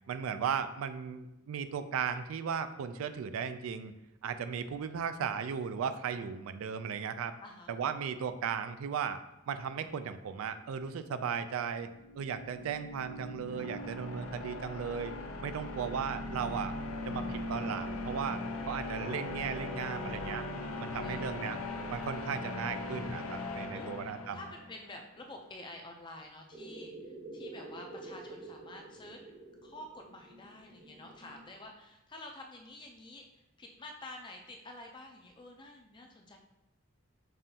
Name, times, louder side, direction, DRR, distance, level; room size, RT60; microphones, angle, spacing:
voice 1, 0.1-3.9 4.2-7.4 7.7-9.2 9.5-15.1 15.4-16.7 17.1-20.4 20.8-21.6 21.9-24.4, right 7 dB, 80° right, 10 dB, 0.3 m, -36 dB
sound 1, 11.9-24.8, left 2 dB, 80° left, 0.5 m, -39 dB
voice 2, 14.0-15.1 21.0-21.6 23.1-29.2 29.6-36.4, left 2 dB, 20° left, 2 dB, 0.4 m, -50 dB
sound 2, 26.5-31.6, right 2 dB, 50° right, 1.0 m, -48 dB
5.4 x 2.5 x 2.7 m, 0.90 s
head